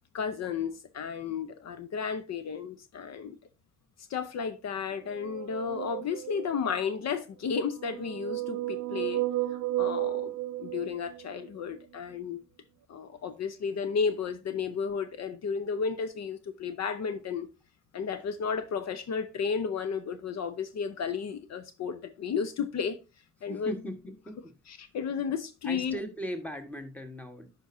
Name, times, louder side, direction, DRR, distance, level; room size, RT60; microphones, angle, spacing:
voice 1, 0.1-3.3 4.1-9.2 9.5-10.3 10.6-12.4 12.9-17.5 17.9-23.0 23.4-23.7 24.7-26.0, left 6 dB, 60° left, 0.8 m, -33 dB
sound 1, 5.1-6.7 7.6-11.4, right 15 dB, 65° right, 0.4 m, -33 dB
voice 2, 23.5-24.5 25.6-27.5, equal, 5° left, 1.4 m, -38 dB
10.0 x 5.3 x 2.7 m
cardioid pair, 90°, 30 cm